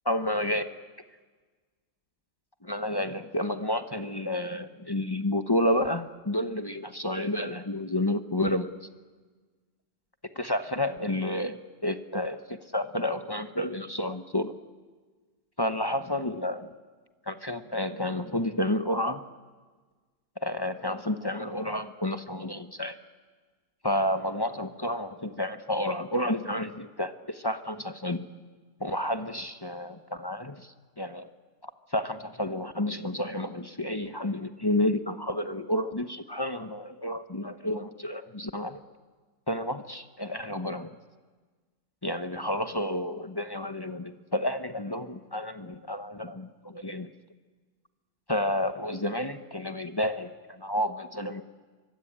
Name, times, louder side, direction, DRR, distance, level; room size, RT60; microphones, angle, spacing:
voice 1, 0.1-0.6 2.6-8.7 10.3-14.5 15.6-16.7 17.3-19.2 20.4-23.0 23.8-28.2 28.8-31.3 31.6-38.8 39.5-40.9 42.0-47.1 48.3-51.4, left 1 dB, 20° left, 8 dB, 0.6 m, -30 dB
24.0 x 23.5 x 8.8 m, 1.4 s
omnidirectional pair, 1.9 m